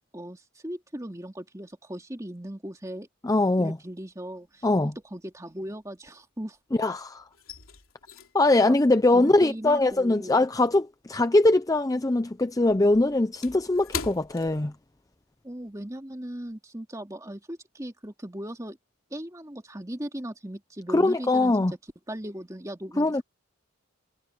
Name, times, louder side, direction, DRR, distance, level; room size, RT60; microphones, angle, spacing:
voice 1, 0.1-3.1 3.6-6.6 8.7-8.8 9.1-10.4 15.4-18.8 19.1-21.6 22.1-23.2, right 1 dB, 15° right, 2.4 m, -38 dB
voice 2, 3.2-3.8 4.6-4.9 6.8-7.2 8.3-14.7 20.9-21.7 23.0-23.2, left 2 dB, 15° left, 0.5 m, -22 dB
sound 1, 3.9-4.5 4.7-6.7 7.0-11.7 12.0-15.3 15.6-15.8 16.2-16.5, left 6 dB, 70° left, 3.3 m, -42 dB
head